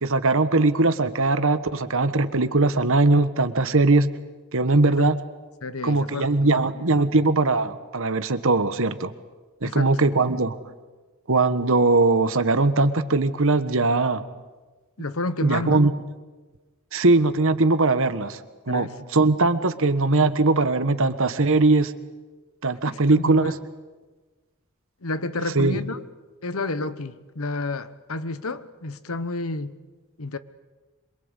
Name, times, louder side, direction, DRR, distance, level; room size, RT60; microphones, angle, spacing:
voice 1, 0.0-4.1 4.5-5.2 5.8-9.1 9.6-10.6 11.3-14.2 15.4-15.9 16.9-18.4 18.7-21.9 22.6-23.5 25.5-25.8, right 3 dB, 65° right, 11 dB, 1.4 m, -20 dB
voice 2, 5.6-6.8 9.6-9.9 15.0-15.8 18.7-19.0 22.8-23.5 25.0-26.0 26.4-29.8 30.2-30.4, left 2 dB, 65° left, 14 dB, 1.2 m, -30 dB
26.5 x 23.5 x 8.3 m, 1.3 s
head